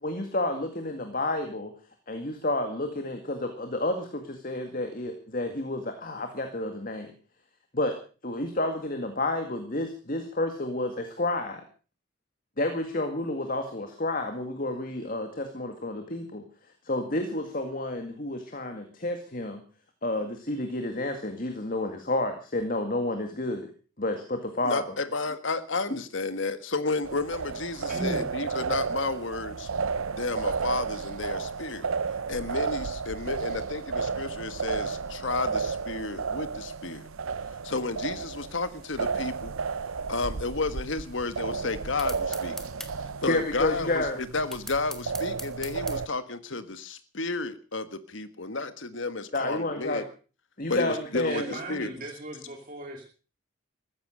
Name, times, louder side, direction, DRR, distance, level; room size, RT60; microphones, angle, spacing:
voice 1, 0.0-1.7 2.1-7.1 7.7-8.0 8.2-11.6 12.6-16.4 16.8-19.6 20.0-23.7 24.0-24.8 43.3-44.2 49.3-50.0 50.6-51.6, left 2 dB, 40° left, 6 dB, 2.1 m, -30 dB
voice 2, 24.6-29.7 30.1-31.9 32.3-37.1 37.6-39.5 40.1-42.5 43.2-50.0 50.7-51.9, left 3 dB, 65° left, 12 dB, 1.5 m, -32 dB
sound 1, 27.0-46.1, right 5 dB, 85° right, 0.7 m, -33 dB
voice 3, 27.8-28.3 51.3-53.0, right 2 dB, 40° right, 1 dB, 2.7 m, -37 dB
sound 2, 42.0-42.9 44.5-46.0, left 1 dB, ahead, 1.7 m, -39 dB
15.0 x 13.5 x 6.4 m, 0.38 s
head